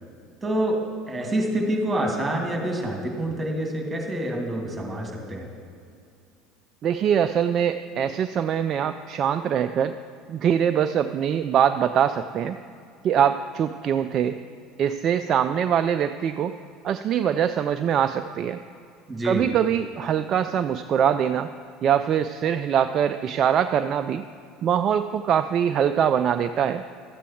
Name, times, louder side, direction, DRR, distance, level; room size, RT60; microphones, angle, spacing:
voice 1, 0.4-0.8 1.1-5.5 19.1-19.5, right 1 dB, 20° right, 0 dB, 2.5 m, -27 dB
voice 2, 6.8-9.9 10.3-12.6 13.0-14.4 14.8-16.5 16.8-18.6 19.2-21.5 21.8-24.2 24.6-26.8, right 8 dB, 45° right, 9 dB, 0.3 m, -23 dB
13.0 x 8.3 x 4.6 m, 2.4 s
figure-of-eight pair, 70°, 0 cm